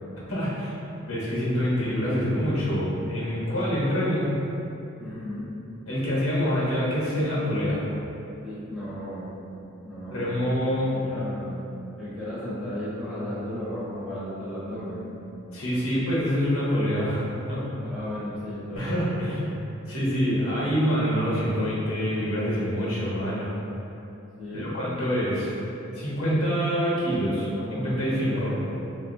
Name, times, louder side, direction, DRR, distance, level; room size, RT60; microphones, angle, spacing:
voice 1, 0.3-0.7 1.1-4.3 5.9-7.8 10.1-10.9 15.5-17.7 18.7-19.6 19.9-23.6 24.5-25.6 25.9-28.5, equal, 85° left, -6 dB, 0.8 m, -26 dB
voice 2, 5.0-5.5 8.4-9.3 9.8-10.5 10.9-11.5 12.0-15.1 17.8-19.1 24.4-24.8 27.2-28.6, equal, ahead, -12 dB, 0.7 m, -35 dB
3.7 x 2.2 x 2.6 m, 2.8 s
head